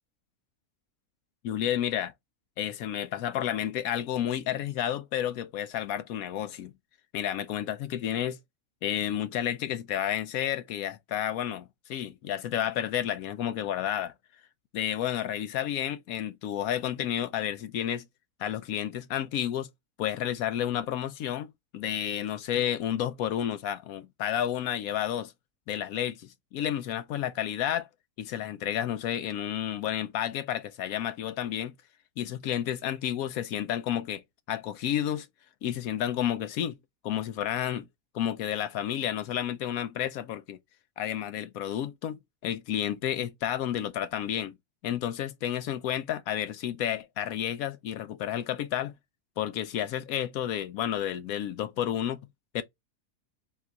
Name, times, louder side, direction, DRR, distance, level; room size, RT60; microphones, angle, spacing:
voice 1, 1.4-2.1 2.6-6.7 7.1-8.4 8.8-11.6 11.9-14.1 14.7-18.0 18.4-19.7 20.0-25.3 25.7-27.9 28.2-31.7 32.2-34.2 34.5-35.3 35.6-36.8 37.0-37.9 38.1-40.6 41.0-44.6 44.8-48.9 49.4-52.2 52.5-52.6, left 10 dB, 75° left, 1.0 m, -31 dB
4.1 x 2.4 x 3.9 m
omnidirectional pair, 1.6 m